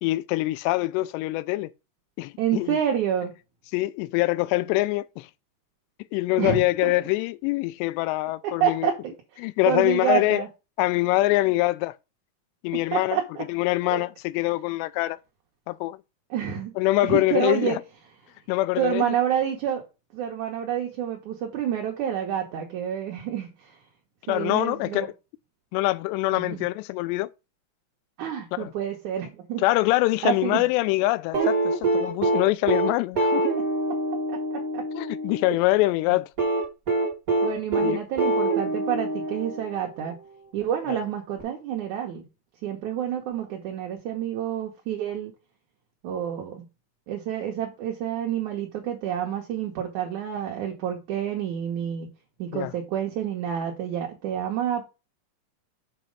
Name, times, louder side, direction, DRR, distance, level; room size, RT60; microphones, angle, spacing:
voice 1, 0.0-1.7 2.2-2.8 3.7-5.3 6.1-8.9 9.4-10.4 10.8-11.9 12.6-13.2 13.5-15.2 15.7-16.0 16.8-17.8 18.5-19.2 24.3-25.1 25.7-27.3 28.5-28.7 29.6-33.5 34.9-36.3 37.8-38.1 40.9-41.0 52.5-52.7, left 19 dB, 85° left, 2.7 m, -24 dB
voice 2, 2.4-3.3 6.4-6.9 8.4-9.1 9.7-10.5 12.9-13.5 13.9-14.1 16.3-16.7 17.0-17.8 18.8-19.8 20.1-23.8 24.3-25.1 26.3-26.6 28.2-29.6 30.2-30.6 34.3-34.8 37.4-40.2 40.5-42.2 42.6-45.3 46.0-46.6 47.1-52.1 52.4-54.9, right 9 dB, 65° right, 2.0 m, -28 dB
sound 1, 31.3-35.4 36.4-40.0 41.4-41.5, right 2 dB, 50° right, 1.0 m, -25 dB
7.7 x 4.3 x 5.2 m
omnidirectional pair, 4.9 m